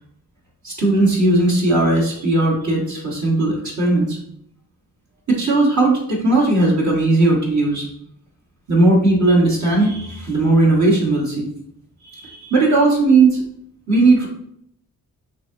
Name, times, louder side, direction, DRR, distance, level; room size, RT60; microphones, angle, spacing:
voice 1, 0.6-4.2 5.3-7.9 8.7-11.5 12.0-13.4 13.9-14.3, right 2 dB, 55° right, -3 dB, 1.5 m, -17 dB
6.1 x 2.8 x 2.7 m, 0.70 s
cardioid pair, 60°, 35 cm